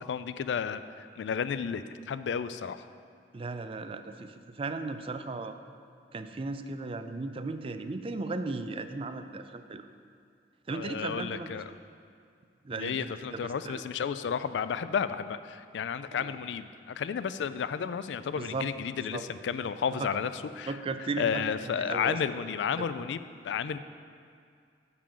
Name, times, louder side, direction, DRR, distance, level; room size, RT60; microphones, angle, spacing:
voice 1, 0.0-2.8 10.7-11.7 12.7-20.7 21.2-23.8, left 7 dB, 80° left, 13 dB, 0.3 m, -32 dB
voice 2, 3.3-5.6 6.1-9.9 10.7-11.6 12.6-13.8 16.1-16.4 18.4-18.7 19.0-19.2 20.0-20.1 20.7-22.2 22.8-22.9, right 3 dB, 30° right, 9 dB, 0.4 m, -36 dB
9.7 x 3.8 x 7.1 m, 2.3 s
head